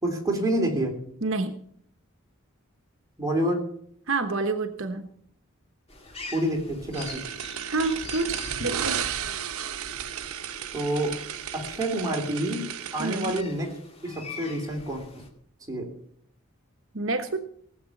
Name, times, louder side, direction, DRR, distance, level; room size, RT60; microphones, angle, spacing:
voice 1, 0.0-0.9 3.2-3.7 6.3-7.3 10.7-11.2 11.5-12.7 12.9-13.8 14.0-15.2 15.7-15.9, right 1 dB, 15° right, 1 dB, 3.0 m, -28 dB
voice 2, 1.2-1.5 4.1-5.0 7.7-9.0 13.0-13.3 16.9-17.4, right 3 dB, 65° right, 7 dB, 1.1 m, -28 dB
sound 1, 5.9-15.3, left 3 dB, 25° left, 2.3 m, -44 dB
sound 2, 6.9-13.4, right 9 dB, 85° right, 0.8 m, -34 dB
18.0 x 8.0 x 7.2 m, 0.65 s
head